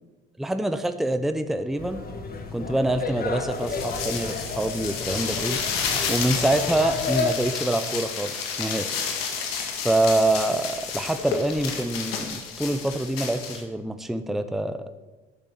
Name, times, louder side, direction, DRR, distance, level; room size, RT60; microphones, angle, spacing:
voice 1, 0.4-2.0 2.5-5.6 6.1-8.3 8.6-8.9 9.8-14.8, right 1 dB, ahead, 9 dB, 0.8 m, -25 dB
sound 1, 1.8-7.3, left 4 dB, 30° left, 1.8 m, -32 dB
sound 2, 3.5-13.6, left 6 dB, 85° left, 1.9 m, -31 dB
12.0 x 7.1 x 6.1 m, 1.2 s
hypercardioid pair, 75°, 29 cm